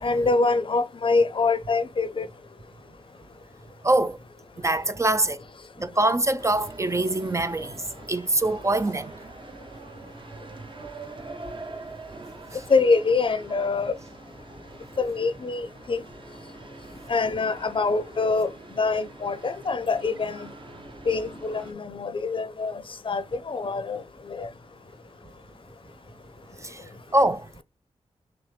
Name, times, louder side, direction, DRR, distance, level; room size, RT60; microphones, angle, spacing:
voice 1, 0.0-2.3 12.7-13.9 15.0-16.0 17.1-20.5 21.1-24.5, left 4 dB, 45° left, 0.6 m, -25 dB
voice 2, 3.8-4.2 4.6-5.4 5.8-7.8 8.1-9.1 12.5-12.6 26.6-26.8 27.1-27.6, right 1 dB, 25° right, 0.3 m, -24 dB
sound 1, 6.4-21.7, right 3 dB, 45° right, 0.9 m, -44 dB
6.0 x 2.1 x 3.2 m
wide cardioid pair, 85°, 12 cm